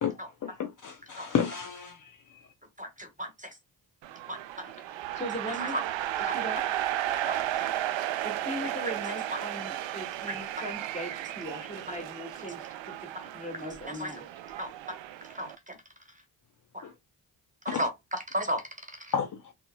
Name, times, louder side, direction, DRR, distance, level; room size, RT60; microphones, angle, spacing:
voice 1, 0.0-2.2 16.8-16.9 17.7-17.9 19.1-19.4, left 7 dB, 40° left, 0.6 m, -32 dB
voice 2, 2.8-3.5 4.3-4.4 5.6-5.8 6.3-6.4 7.3-7.7 10.3-10.4 14.0-14.1 14.6-14.7 15.3-15.8 16.7-16.8 17.6-18.6 19.0-19.1, equal, 15° right, 1.3 m, -34 dB
sound 1, 4.0-15.6, right 13 dB, 70° right, 0.5 m, -34 dB
voice 3, 4.8-5.8 6.2-6.7 8.2-13.0 13.3-14.3, equal, 15° left, 1.7 m, -39 dB
3.7 x 2.1 x 2.2 m
supercardioid pair, 40°, 47 cm